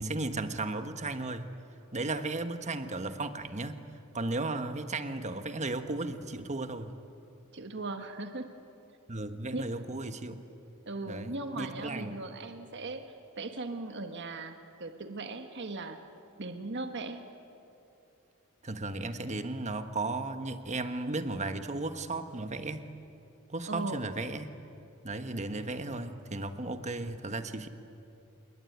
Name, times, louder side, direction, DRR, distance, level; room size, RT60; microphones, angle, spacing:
voice 1, 0.0-1.5 1.9-3.8 4.1-6.9 9.1-10.4 11.1-12.2 18.6-22.9 23.5-24.5 25.0-27.7, right 2 dB, 35° right, 9 dB, 1.3 m, -35 dB
voice 2, 7.5-8.5 9.5-9.6 10.9-13.0 13.4-16.0 16.4-17.2 23.7-24.1, right 2 dB, 55° right, 6 dB, 1.5 m, -38 dB
26.5 x 22.5 x 9.4 m, 2.7 s
head